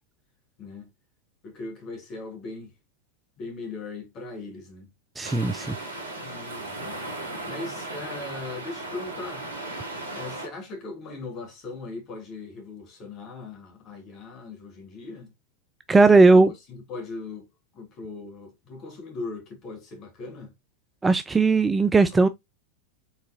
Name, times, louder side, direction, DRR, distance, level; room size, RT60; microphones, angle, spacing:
voice 1, 0.6-0.9 1.4-2.7 3.4-4.9 6.1-7.0 7.5-9.4 10.1-15.3 16.3-17.5 17.7-20.5 22.1-22.3, left 3 dB, 35° left, 2.1 m, -39 dB
sound 1, 5.2-10.5, right 2 dB, 85° left, 2.1 m, -36 dB
voice 2, 5.2-5.8 15.9-16.5 21.0-22.3, right 3 dB, 10° right, 0.3 m, -17 dB
4.5 x 3.8 x 2.7 m
figure-of-eight pair, 90°, 0 cm